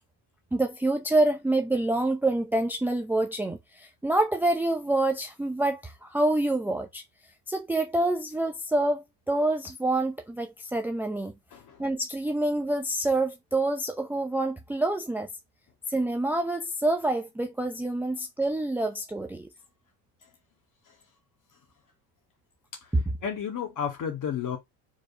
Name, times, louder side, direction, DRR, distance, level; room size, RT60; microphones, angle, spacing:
voice 1, 0.5-7.0 7.5-11.3 11.8-15.3 15.9-19.5 22.9-23.0, right 2 dB, 5° right, 0.7 m, -27 dB
voice 2, 11.5-11.8 23.2-24.6, left 8 dB, 40° left, 2.7 m, -32 dB
4.8 x 4.0 x 5.0 m
supercardioid pair, 115°, 46 cm